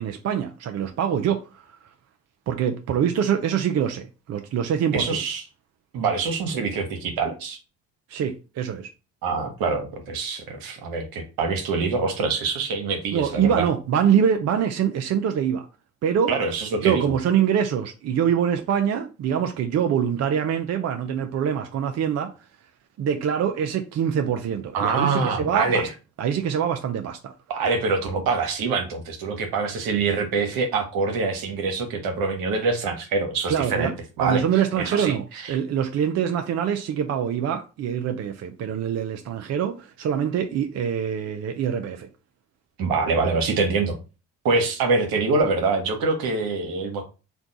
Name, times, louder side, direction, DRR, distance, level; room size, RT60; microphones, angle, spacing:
voice 1, 0.0-1.8 2.5-5.2 8.1-8.9 13.1-15.7 16.0-16.3 16.8-22.3 23.0-25.9 26.2-27.3 33.5-33.9 34.2-42.1, right 8 dB, 40° right, 0.5 m, -24 dB
voice 2, 4.9-5.4 5.9-7.6 9.2-13.7 16.3-17.1 24.7-25.9 27.5-34.4 34.8-35.1 35.4-35.5 42.8-44.0 44.4-47.0, right 4 dB, 65° right, 1.0 m, -25 dB
3.4 x 2.3 x 3.8 m
hypercardioid pair, 55°, 39 cm